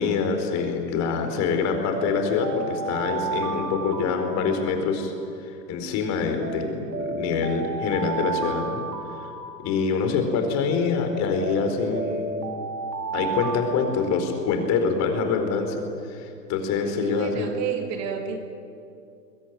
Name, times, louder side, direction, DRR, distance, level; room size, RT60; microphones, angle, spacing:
voice 1, 0.0-5.1 5.5-8.8 9.2-9.3 9.6-12.5 13.1-15.8 16.0-17.6, left 5 dB, 35° left, 5 dB, 4.4 m, -25 dB
Alarm, 1.9-5.2 6.4-10.2 11.4-14.7, right 4 dB, 80° right, 2.5 m, -33 dB
voice 2, 16.8-18.4, right 7 dB, 35° right, 5 dB, 2.5 m, -31 dB
23.0 x 20.5 x 9.5 m, 2.5 s
hypercardioid pair, 125°, 49 cm